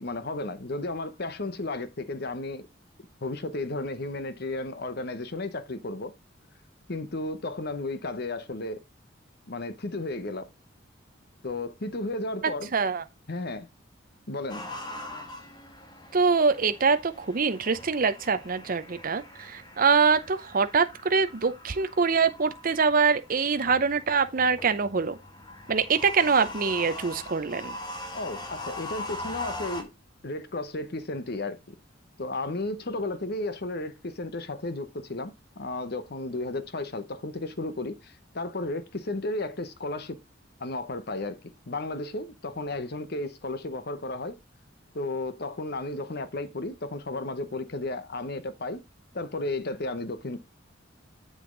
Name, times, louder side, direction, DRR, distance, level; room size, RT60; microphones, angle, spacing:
voice 1, 0.0-2.7 3.2-6.1 6.9-8.8 9.5-10.5 11.4-12.7 13.3-13.7 14.3-14.7 28.1-29.9 30.2-31.7 32.2-40.2 40.6-44.4 44.9-48.8 49.1-50.4, left 2 dB, 55° left, 1.0 m, -33 dB
voice 2, 12.7-13.0 16.1-25.2 25.7-27.8, right 5 dB, 45° right, 0.7 m, -24 dB
sound 1, 14.5-29.8, left 2 dB, 20° left, 1.8 m, -42 dB
7.8 x 6.3 x 3.8 m
head